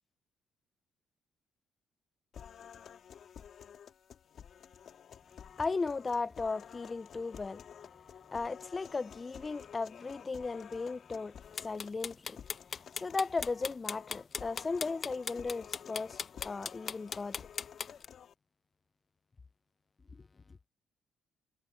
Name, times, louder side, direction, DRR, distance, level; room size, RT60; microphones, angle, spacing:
sound 1, 2.3-18.3, left 8 dB, 60° left, 2.6 m, -52 dB
voice 1, 5.6-7.6 8.3-11.3 11.6-12.4 13.0-17.4, left 4 dB, 30° left, 0.3 m, -36 dB
sound 2, 11.5-18.0, left 6 dB, 45° left, 0.9 m, -38 dB
cardioid pair, 90°, 0 cm